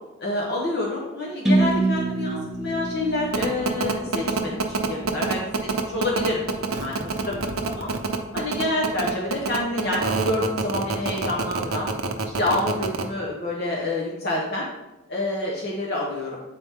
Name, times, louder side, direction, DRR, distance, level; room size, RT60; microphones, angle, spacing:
voice 1, 0.2-5.4 5.9-7.9 8.3-11.9 12.3-14.7 15.1-16.4, left 2 dB, 50° left, -3 dB, 1.0 m, -27 dB
sound 1, 1.5-5.3, right 2 dB, ahead, 0.8 m, -26 dB
sound 2, 3.3-13.0, right 4 dB, 80° right, 0.7 m, -25 dB
8.7 x 4.3 x 3.6 m, 1.0 s
head